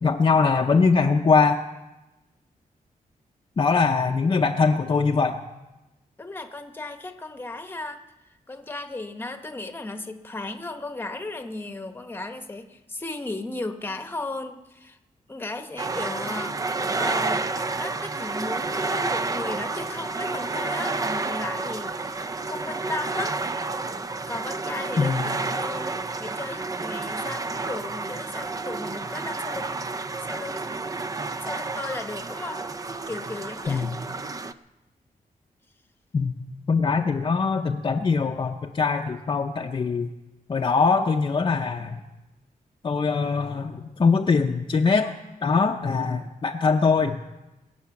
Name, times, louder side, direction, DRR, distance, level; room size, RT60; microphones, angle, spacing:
voice 1, 0.0-1.6 3.6-5.4 25.0-25.2 33.7-33.9 36.1-36.3 36.7-40.1 40.5-42.0 42.8-45.1 45.4-47.2, left 4 dB, 35° left, 2 dB, 0.7 m, -22 dB
voice 2, 6.2-8.0 8.5-15.0 15.3-16.6 16.9-23.4 24.3-29.8 30.2-30.8 31.4-32.6 33.1-34.0, left 2 dB, 15° left, 7 dB, 1.0 m, -35 dB
sound 1, 15.8-34.5, right 3 dB, 25° right, 0.5 m, -30 dB
21.5 x 8.6 x 7.1 m, 1.0 s
wide cardioid pair, 160°, 14 cm